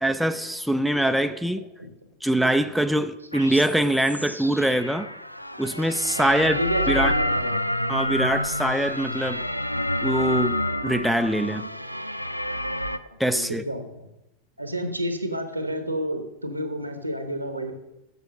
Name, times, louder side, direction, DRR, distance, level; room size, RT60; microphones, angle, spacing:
voice 1, 0.0-1.6 2.2-5.1 5.6-6.6 6.9-7.1 7.9-9.4 10.0-11.7 13.2-13.6, right 1 dB, ahead, 9 dB, 0.4 m, -23 dB
sound 1, 3.3-13.0, left 1 dB, 90° left, 0.3 m, -28 dB
voice 2, 6.2-7.6 13.1-14.0 14.6-17.7, equal, 85° right, 7 dB, 1.1 m, -30 dB
7.2 x 6.8 x 6.3 m, 0.93 s
figure-of-eight pair, 90°, 0 cm